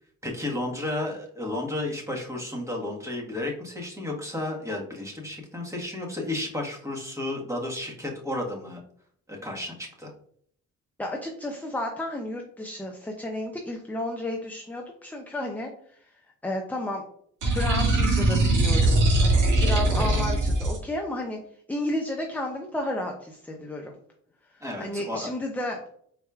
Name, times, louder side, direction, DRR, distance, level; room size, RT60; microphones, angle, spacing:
voice 1, 0.2-8.8 9.3-10.1 24.6-25.3, left 2 dB, 10° right, -1 dB, 1.4 m, -32 dB
voice 2, 11.0-15.7 16.4-17.0 17.4-21.4 21.7-23.9 24.8-25.8, left 1 dB, 5° left, 2 dB, 0.6 m, -32 dB
sound 1, 17.4-20.8, right 2 dB, 85° right, 1.6 m, -21 dB
4.7 x 4.2 x 2.3 m, 0.63 s
cardioid pair, 90°, 30 cm